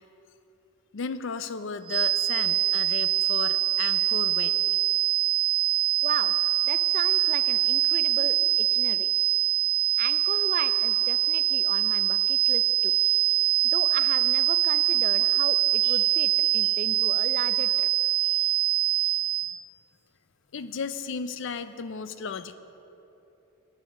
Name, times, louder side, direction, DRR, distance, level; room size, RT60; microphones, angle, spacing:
voice 1, 0.9-4.6 8.2-8.6 15.8-16.1 16.6-16.7 18.2-18.5 20.5-22.6, left 5 dB, 60° left, 12 dB, 0.5 m, -35 dB
sound 1, 1.9-19.6, right 14 dB, 90° right, 0.6 m, -24 dB
voice 2, 6.0-6.3 6.6-9.1 10.0-12.9 13.6-17.9, right 6 dB, 40° right, 12 dB, 0.4 m, -36 dB
9.0 x 8.7 x 6.3 m, 3.0 s
head